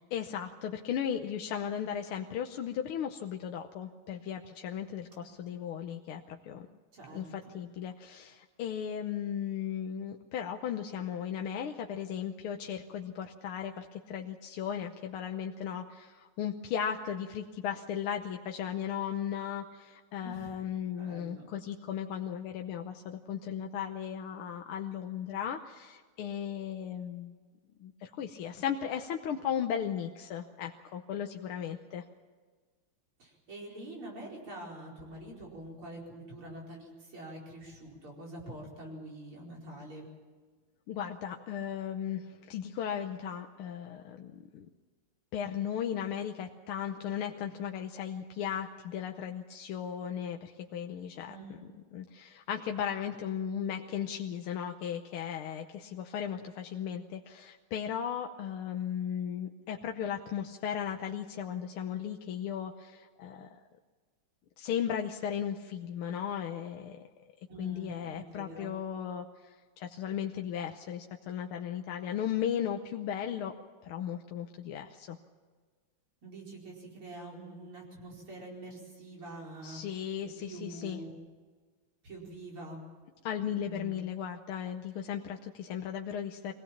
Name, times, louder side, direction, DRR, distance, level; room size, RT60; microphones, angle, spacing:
voice 1, 0.1-6.7 7.1-27.3 27.8-32.0 40.9-44.7 45.3-51.4 51.9-63.6 64.6-67.0 67.6-73.5 73.8-75.2 79.6-81.0 83.2-86.5, left 9 dB, 80° left, 4 dB, 1.8 m, -36 dB
voice 2, 5.1-5.5 6.9-7.6 20.2-20.5 21.0-21.5 33.2-40.1 51.3-51.6 67.5-68.7 76.2-79.8 80.4-81.2 82.0-82.8 83.7-84.0, right 1 dB, 75° right, -2 dB, 5.6 m, -46 dB
23.0 x 17.0 x 7.2 m, 1.4 s
omnidirectional pair, 2.4 m